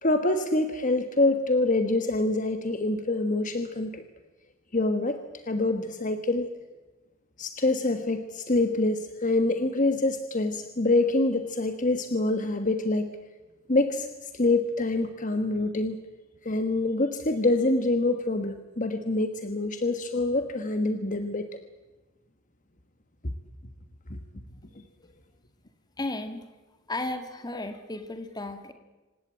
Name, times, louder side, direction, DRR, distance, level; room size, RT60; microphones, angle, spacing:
voice 1, 0.0-4.0 4.7-5.2 5.5-6.5 7.4-13.1 13.7-16.0 16.4-21.5 23.2-23.3 24.1-24.2, left 2 dB, 40° left, 8 dB, 1.4 m, -26 dB
voice 2, 26.0-26.5 26.9-28.7, left 2 dB, 20° left, 7 dB, 2.1 m, -34 dB
27.0 x 16.5 x 8.9 m, 1.2 s
head